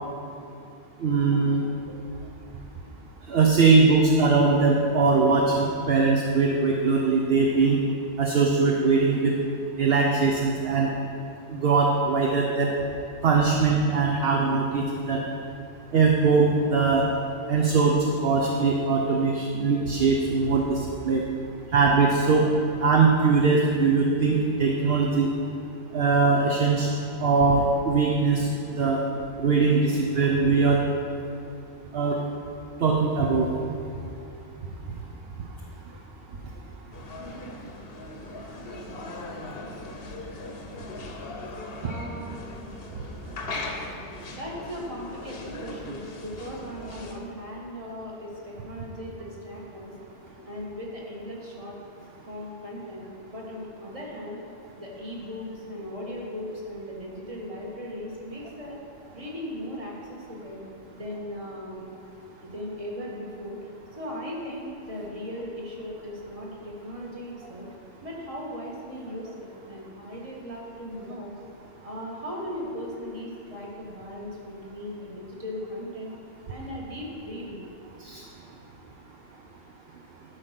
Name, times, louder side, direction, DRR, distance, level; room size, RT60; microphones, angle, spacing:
voice 1, 1.0-1.6 3.3-7.8 8.2-9.3 9.8-10.9 11.5-12.7 13.2-15.2 15.9-17.0 17.5-18.0 18.2-21.2 21.7-25.3 25.9-26.9 27.2-28.5 28.7-29.0 29.4-30.8 31.9-32.2 32.8-33.5 78.0-78.2, right 4 dB, 60° right, 0 dB, 0.9 m, -21 dB
sound 1, 36.9-47.2, left 2 dB, 55° left, 1.0 m, -39 dB
voice 2, 41.8-42.4 44.4-49.9 50.4-51.8 52.3-54.4 54.8-58.8 59.1-60.6 60.9-61.9 62.4-63.6 64.0-67.7 68.0-71.3 71.8-76.1 76.5-77.7, equal, 30° right, -3 dB, 1.6 m, -38 dB
12.0 x 4.9 x 5.8 m, 2.6 s
omnidirectional pair, 1.2 m